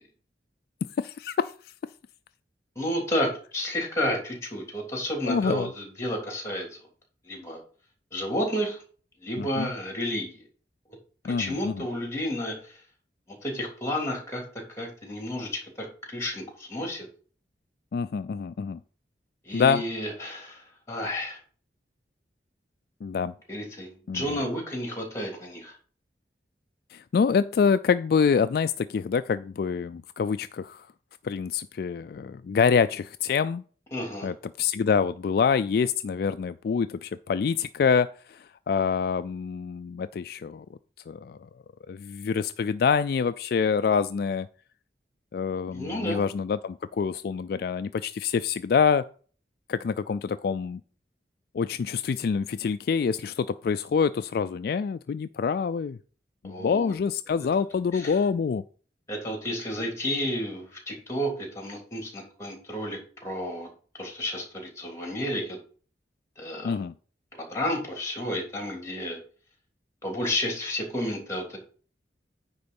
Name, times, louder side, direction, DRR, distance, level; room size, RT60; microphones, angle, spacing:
voice 1, 1.0-1.5 5.3-5.7 9.4-9.7 11.2-11.8 17.9-18.8 19.5-19.8 23.0-23.3 24.1-24.4 26.9-30.9 31.2-33.6 34.2-40.7 41.1-41.4 41.9-44.5 45.3-49.0 49.7-50.8 51.5-56.0 56.4-58.6 66.6-66.9, left 6 dB, 55° left, 12 dB, 0.3 m, -26 dB
voice 2, 2.7-6.7 7.2-7.6 8.1-8.8 9.2-10.4 11.4-12.8 13.3-14.4 14.8-17.1 19.4-21.4 23.5-25.7 33.9-34.3 45.7-46.2 56.4-56.9 57.9-58.2 59.1-63.7 64.0-65.6 66.4-66.8 67.3-69.2 70.0-71.6, equal, 15° left, 1 dB, 3.1 m, -31 dB
9.6 x 3.8 x 7.0 m, 0.41 s
head